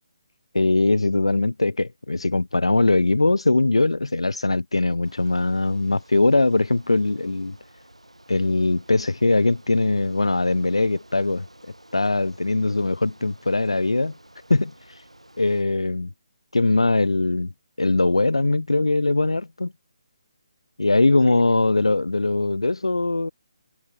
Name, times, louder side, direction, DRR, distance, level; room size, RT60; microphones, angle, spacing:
voice 1, 0.5-7.6 8.3-11.4 11.9-14.1 14.5-14.7 15.4-16.1 16.5-17.5 17.8-19.7 20.8-23.3, left 2 dB, 75° left, 0.8 m, -21 dB
Bicycle, 5.0-15.6, right 1 dB, 90° right, 5.4 m, -52 dB
figure-of-eight pair, 145°, 3 cm